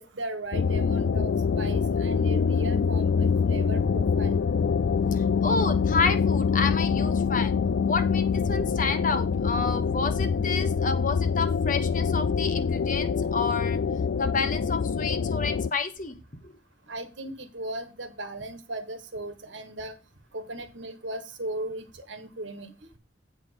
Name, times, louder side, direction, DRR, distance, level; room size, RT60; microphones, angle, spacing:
voice 1, 0.0-4.4 16.9-20.0 20.3-23.0, right 1 dB, 75° right, 9 dB, 1.5 m, -37 dB
sound 1, 0.5-15.7, left 6 dB, 70° left, 0.4 m, -25 dB
voice 2, 5.1-7.6 7.8-13.8 14.2-16.1 16.4-16.5, left 4 dB, 45° left, 9 dB, 1.2 m, -30 dB
8.7 x 5.1 x 5.8 m, 0.28 s
head